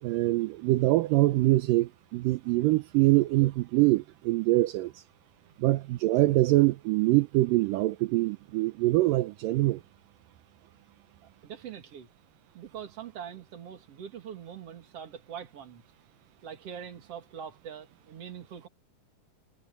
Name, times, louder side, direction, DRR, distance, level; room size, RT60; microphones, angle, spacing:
voice 1, 0.0-5.0 5.6-9.8, right 18 dB, 80° right, 2.2 m, -24 dB
voice 2, 11.4-12.1 12.5-15.8 16.4-18.7, right 8 dB, 45° right, 2.9 m, -43 dB
omnidirectional pair, 4.2 m